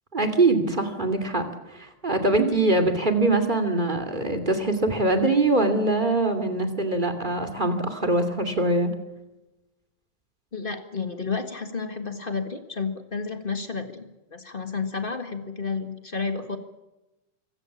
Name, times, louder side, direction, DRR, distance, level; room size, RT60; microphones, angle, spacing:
voice 1, 0.1-1.4 1.7-8.9, right 2 dB, 15° right, 6 dB, 2.5 m, -23 dB
voice 2, 10.5-16.6, left 4 dB, 25° left, 7 dB, 1.2 m, -31 dB
25.5 x 17.5 x 7.4 m, 0.99 s
omnidirectional pair, 3.5 m